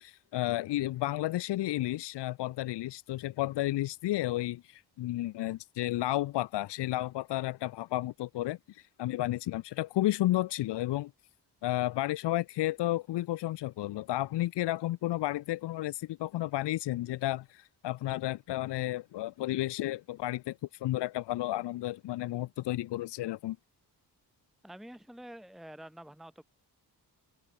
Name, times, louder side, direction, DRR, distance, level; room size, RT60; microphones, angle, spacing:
voice 1, 0.0-11.1 11.6-23.6, left 15 dB, 85° left, 0.5 m, -32 dB
voice 2, 24.6-26.4, right 1 dB, ahead, 1.3 m, -48 dB
cardioid pair, 75°, 40 cm